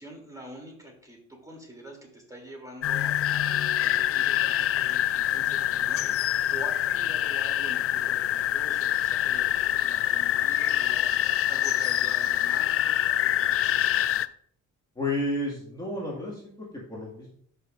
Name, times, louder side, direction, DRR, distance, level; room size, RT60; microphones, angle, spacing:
voice 1, 0.0-13.8, right 1 dB, 10° right, 0 dB, 3.1 m, -45 dB
sound 1, 2.8-14.3, left 12 dB, 50° left, 0.4 m, -25 dB
voice 2, 15.0-17.3, left 1 dB, 15° left, -5 dB, 2.1 m, -31 dB
12.0 x 5.6 x 2.6 m, 0.62 s
cardioid pair, 90°, 30 cm